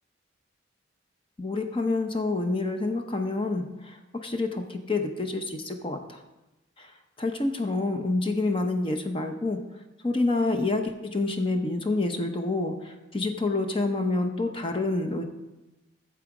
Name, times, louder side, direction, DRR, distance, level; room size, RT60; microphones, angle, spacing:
voice 1, 1.4-6.2 6.8-6.9 7.2-9.6 10.0-15.2, left 2 dB, 25° left, 5 dB, 0.7 m, -28 dB
8.9 x 7.0 x 4.9 m, 1.0 s
head